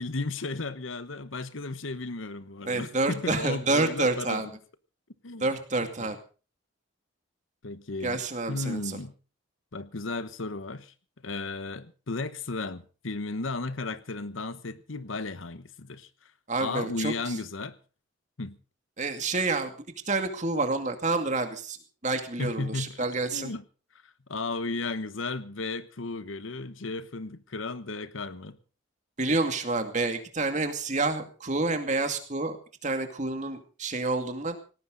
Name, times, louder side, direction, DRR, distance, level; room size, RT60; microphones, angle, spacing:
voice 1, 0.0-4.4 5.2-5.5 5.8-6.1 7.6-9.1 9.7-10.9 11.2-16.1 16.6-17.8 18.4-18.6 22.4-23.0 23.3-23.6 24.0-28.6, left 3 dB, 85° left, 14 dB, 1.1 m, -34 dB
voice 2, 2.7-4.5 5.4-6.2 8.0-9.0 16.5-17.4 19.0-19.7 20.1-21.8 22.0-23.5 29.2-32.6 32.8-34.6, right 3 dB, 40° right, 6 dB, 2.4 m, -28 dB
18.0 x 17.5 x 4.0 m, 0.37 s
head